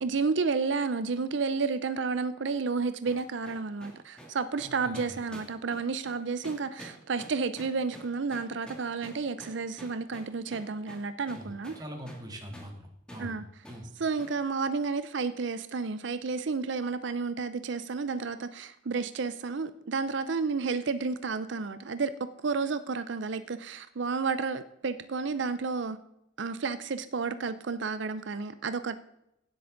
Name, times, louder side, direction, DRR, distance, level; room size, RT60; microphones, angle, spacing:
voice 1, 0.0-11.8 13.2-13.4 14.0-26.0 26.4-29.0, right 4 dB, 65° right, 0.5 m, -31 dB
sound 1, 3.1-12.3 12.5-12.7 13.1-13.3 13.6-13.8 14.2-14.4, equal, 5° left, 2.1 m, -48 dB
voice 2, 4.6-5.2 11.4-13.4 13.7-13.9, equal, 20° right, 2.0 m, -43 dB
16.5 x 7.8 x 3.9 m
head